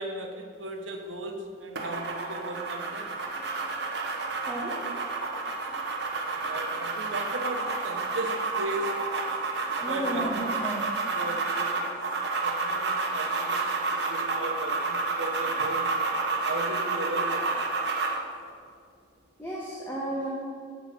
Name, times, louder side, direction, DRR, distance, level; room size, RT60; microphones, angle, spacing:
voice 1, 0.0-3.1 6.3-9.0 9.8-10.5 11.1-12.1 12.4-15.9 16.3-17.7, right 1 dB, 90° right, 4 dB, 1.0 m, -37 dB
sound 1, 1.8-18.3, right 3 dB, 60° right, 1.1 m, -30 dB
voice 2, 4.5-4.8 9.8-10.9 19.4-20.3, right 1 dB, 10° left, -6 dB, 1.1 m, -33 dB
8.1 x 4.7 x 6.6 m, 2.1 s
head